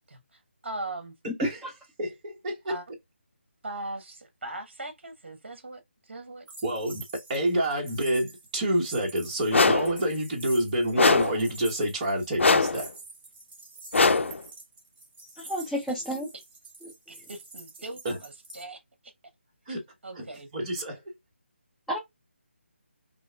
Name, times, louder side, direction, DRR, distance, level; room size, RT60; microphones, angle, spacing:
voice 1, 0.0-1.1 2.7-2.8 3.6-6.5 17.1-19.1 20.0-20.5, right 2 dB, 60° right, 1.0 m, -40 dB
voice 2, 2.0-2.7 6.6-7.0 7.3-12.9 18.0-18.2 19.7-19.8 20.2-20.3 20.5-21.0, right 1 dB, 30° right, 1.0 m, -28 dB
sound 1, 6.5-18.6, right 3 dB, 45° right, 1.7 m, -47 dB
sound 2, 9.5-10.0 11.0-11.4 12.4-12.9 13.9-14.4, left 3 dB, 75° left, 0.4 m, -21 dB
voice 3, 15.4-16.3 16.8-16.9 21.9-22.0, left 1 dB, ahead, 0.5 m, -30 dB
3.9 x 2.9 x 2.2 m
figure-of-eight pair, 155°, 7 cm